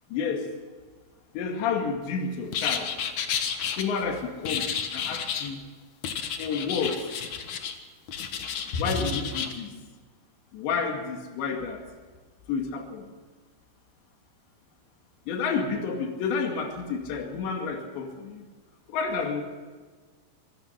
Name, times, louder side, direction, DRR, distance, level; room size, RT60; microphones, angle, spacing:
voice 1, 0.1-0.5 1.3-2.9 3.8-5.6 6.4-7.1 8.7-9.7 10.5-11.8 12.5-13.1 15.3-18.5 18.9-19.4, left 5 dB, 75° left, 3 dB, 4.4 m, -30 dB
sound 1, 2.5-3.8 4.4-5.5 6.0-7.8 8.1-9.5, left 7 dB, 60° left, 2.1 m, -31 dB
27.0 x 16.5 x 5.8 m, 1.4 s
omnidirectional pair, 5.2 m